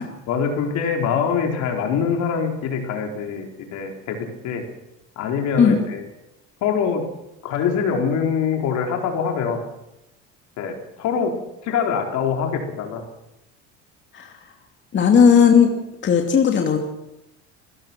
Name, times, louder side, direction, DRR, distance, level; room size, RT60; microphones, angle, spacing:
voice 1, 0.3-4.6 5.2-6.0 6.6-7.0 7.4-9.6 10.6-11.3 11.6-13.0, left 6 dB, 65° left, 3 dB, 4.4 m, -24 dB
voice 2, 14.9-15.7 16.0-16.8, left 7 dB, 35° left, 2 dB, 2.7 m, -15 dB
27.5 x 15.5 x 6.2 m, 0.90 s
supercardioid pair, 115°, 31 cm